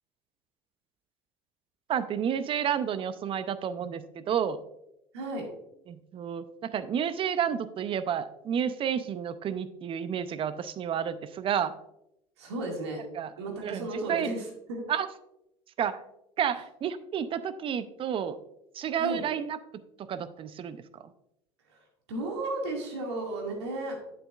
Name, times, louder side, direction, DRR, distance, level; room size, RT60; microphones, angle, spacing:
voice 1, 1.9-4.6 5.9-11.7 13.1-13.3 13.6-14.3 14.9-15.1 15.8-16.0 16.4-18.4 18.7-19.6 20.0-20.8, right 8 dB, 40° right, 13 dB, 0.6 m, -30 dB
voice 2, 5.1-5.5 12.4-13.0 13.4-14.9 19.0-19.2 21.7-21.8 22.1-24.0, right 2 dB, 90° right, 0 dB, 2.2 m, -34 dB
8.7 x 7.9 x 2.4 m, 0.82 s
hypercardioid pair, 85°, 14 cm